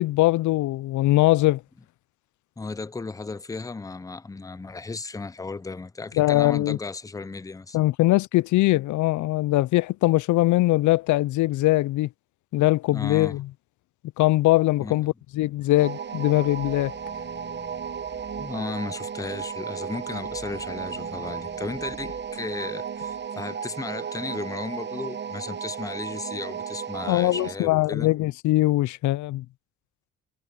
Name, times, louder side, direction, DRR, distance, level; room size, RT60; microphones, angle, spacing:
voice 1, 0.0-1.6 6.2-6.8 7.7-12.1 12.5-13.5 14.2-16.9 27.1-29.4, left 17 dB, 75° left, 0.4 m, -21 dB
voice 2, 2.6-7.8 12.9-13.4 14.8-15.0 18.4-28.1, left 3 dB, 10° left, 0.6 m, -35 dB
sound 1, 15.6-19.5 19.9-23.3, left 5 dB, 30° left, 2.9 m, -50 dB
sound 2, 15.8-27.6, right 7 dB, 35° right, 1.0 m, -34 dB
cardioid pair, 90°, 30 cm